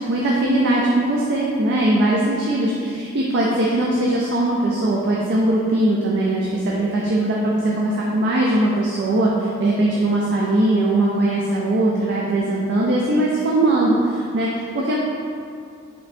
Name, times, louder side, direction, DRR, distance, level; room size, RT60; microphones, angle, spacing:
voice 1, 0.0-15.0, right 1 dB, 55° right, -4 dB, 0.4 m, -20 dB
4.1 x 3.3 x 2.6 m, 2.4 s
head